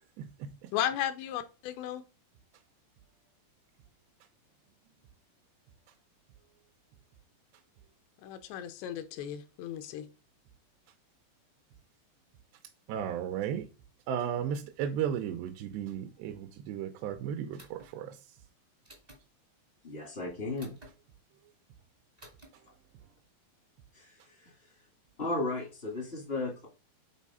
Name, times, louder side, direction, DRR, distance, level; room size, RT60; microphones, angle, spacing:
voice 1, 0.2-0.5 12.9-13.7 14.1-18.2, right 9 dB, 80° right, 2.8 m, -34 dB
voice 2, 0.7-2.0 8.2-10.1, left 11 dB, 85° left, 2.9 m, -35 dB
sound 1, 17.6-17.9 18.8-19.2 20.6-20.9 22.2-22.5, right 1 dB, 50° right, 0.4 m, -53 dB
voice 3, 19.8-20.8 23.9-24.5 25.2-26.7, left 2 dB, 55° left, 0.6 m, -35 dB
7.4 x 4.0 x 5.5 m
omnidirectional pair, 5.0 m